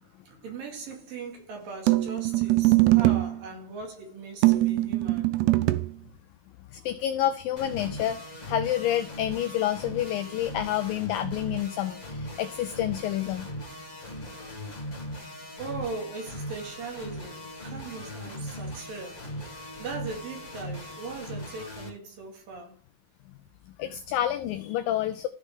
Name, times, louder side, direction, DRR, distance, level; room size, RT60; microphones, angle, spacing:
voice 1, 0.0-5.3 15.6-19.3 19.8-22.8, right 4 dB, 60° right, 3.7 m, -39 dB
sound 1, 1.9-3.4 4.4-5.9, right 19 dB, 85° right, 2.7 m, -22 dB
voice 2, 6.7-13.5 23.8-25.3, left 12 dB, 90° left, 2.0 m, -29 dB
sound 2, 7.6-21.9, equal, 30° left, 0.8 m, -39 dB
14.5 x 5.3 x 3.6 m
omnidirectional pair, 4.7 m